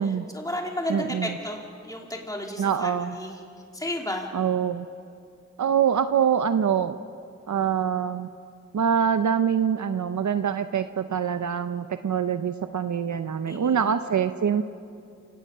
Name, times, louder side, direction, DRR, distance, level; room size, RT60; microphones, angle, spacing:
voice 1, 0.3-3.4 3.7-4.3 13.5-13.9, left 1 dB, 10° left, 0 dB, 2.8 m, -33 dB
voice 2, 0.9-1.4 2.6-3.2 4.3-4.9 5.6-7.0 7.5-8.3 8.7-14.6, right 7 dB, 80° right, 10 dB, 0.7 m, -24 dB
28.5 x 18.0 x 5.6 m, 2.4 s
cardioid pair, 40°, 29 cm